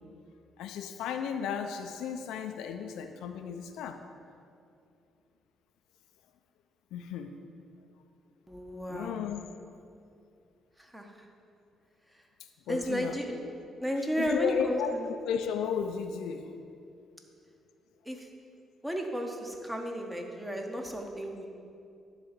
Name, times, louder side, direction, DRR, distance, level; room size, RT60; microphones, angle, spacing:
voice 1, 0.6-4.0 6.9-7.4 8.9-9.4 12.7-13.2 14.2-15.0 15.3-16.5, left 7 dB, 90° left, 6 dB, 0.5 m, -34 dB
voice 2, 8.5-9.2 10.8-11.1 12.7-13.4 13.8-15.1 18.0-18.3 18.8-21.5, equal, 10° right, 2 dB, 1.2 m, -33 dB
10.5 x 3.9 x 7.4 m, 2.5 s
cardioid pair, 90°, 0 cm